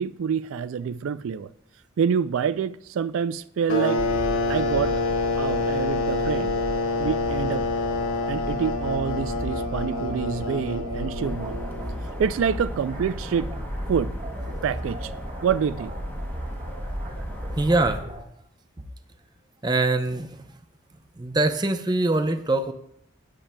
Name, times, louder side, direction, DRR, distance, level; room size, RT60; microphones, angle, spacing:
voice 1, 0.0-1.5 2.0-4.0 4.5-4.9 5.4-6.5 7.0-7.7 8.3-11.6 12.2-14.2 14.6-15.1 15.4-15.9, right 7 dB, 75° right, 0.3 m, -27 dB
sound 1, 3.7-12.1, left 2 dB, 80° left, 1.0 m, -27 dB
sound 2, 4.0-18.2, equal, 40° right, 1.9 m, -35 dB
sound 3, 11.2-18.0, equal, 10° left, 0.8 m, -39 dB
voice 2, 17.6-18.0 19.6-20.4 21.2-22.7, right 2 dB, 20° right, 0.6 m, -23 dB
17.0 x 7.3 x 2.2 m
head